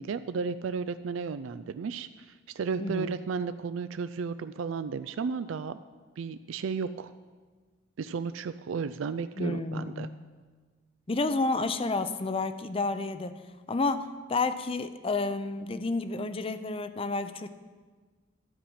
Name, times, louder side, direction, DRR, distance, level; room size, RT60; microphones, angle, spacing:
voice 1, 0.0-5.8 6.2-7.1 8.0-10.1, right 5 dB, 70° right, 12 dB, 0.4 m, -33 dB
voice 2, 2.8-3.1 9.4-10.2 11.1-13.4 13.7-17.5, left 3 dB, 30° left, 11 dB, 0.5 m, -30 dB
13.0 x 5.8 x 8.6 m, 1.4 s
head